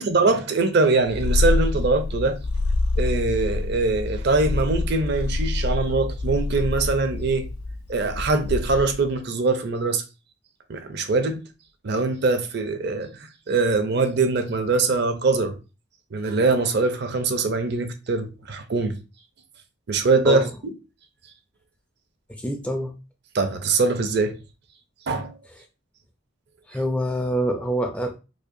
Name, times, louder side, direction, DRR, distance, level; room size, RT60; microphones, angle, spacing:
voice 1, 0.0-2.4 3.0-7.5 7.9-10.0 10.7-11.4 11.8-13.1 13.5-15.6 16.1-19.0 19.9-20.4 23.3-24.4 25.1-25.3, right 3 dB, 50° right, 0.5 m, -22 dB
Purr, 1.0-9.1, left 2 dB, 90° left, 0.5 m, -26 dB
voice 2, 22.3-22.9 26.7-28.2, equal, 5° left, 0.4 m, -26 dB
4.9 x 2.1 x 2.6 m
head